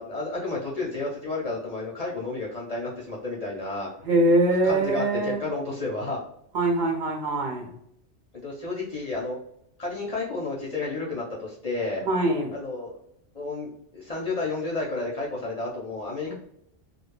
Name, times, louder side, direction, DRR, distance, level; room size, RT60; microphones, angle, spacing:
voice 1, 0.0-4.3 4.6-6.2 8.3-9.4 9.8-12.0 12.5-13.0 13.3-16.3, left 3 dB, 45° left, -4 dB, 0.6 m, -31 dB
voice 2, 4.0-5.4 6.5-7.7 12.0-12.5 16.3-16.4, right 2 dB, 50° right, 0 dB, 0.7 m, -23 dB
2.2 x 2.0 x 3.1 m, 0.72 s
omnidirectional pair, 1.2 m